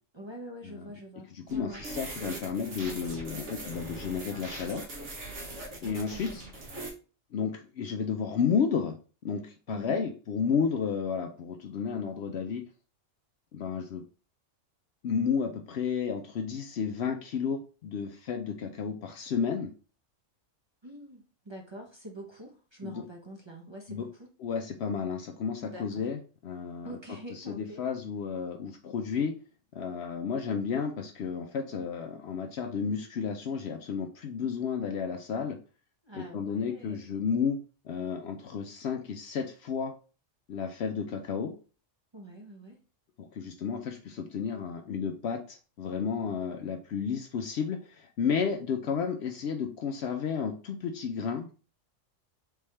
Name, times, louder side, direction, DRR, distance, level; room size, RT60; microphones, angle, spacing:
voice 1, 0.1-1.8 5.8-6.5 9.7-10.0 20.8-24.3 25.6-26.0 26.8-27.8 36.0-37.1 42.1-42.8, right 1 dB, 25° right, -2 dB, 0.7 m, -45 dB
voice 2, 1.3-4.8 5.8-6.4 7.3-8.9 9.2-12.6 13.5-14.0 15.0-19.7 22.8-23.0 23.9-24.0 24.4-27.0 27.4-29.3 29.7-35.6 36.1-37.6 37.8-39.9 40.5-41.5 43.2-51.5, left 6 dB, 65° left, 5 dB, 0.7 m, -32 dB
sound 1, 1.5-6.9, right 2 dB, 65° right, 1.5 m, -41 dB
4.1 x 3.5 x 3.2 m, 0.36 s
omnidirectional pair, 1.4 m